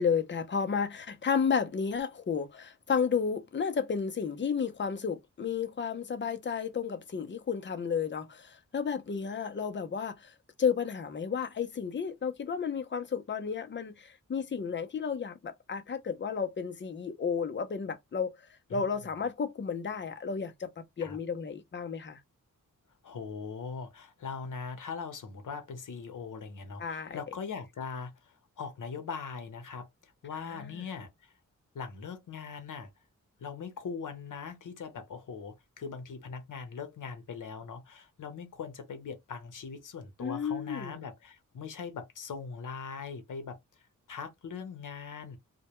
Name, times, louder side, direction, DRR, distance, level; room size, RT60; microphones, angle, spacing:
voice 1, 0.0-18.3 18.7-22.2 26.8-27.2 30.4-30.6 40.2-41.0, left 6 dB, 35° left, 0.5 m, -32 dB
voice 2, 23.0-31.3 31.7-32.9 33.4-43.6 44.1-45.4, left 5 dB, 75° left, 0.7 m, -41 dB
2.1 x 2.1 x 2.9 m
wide cardioid pair, 120°, 31 cm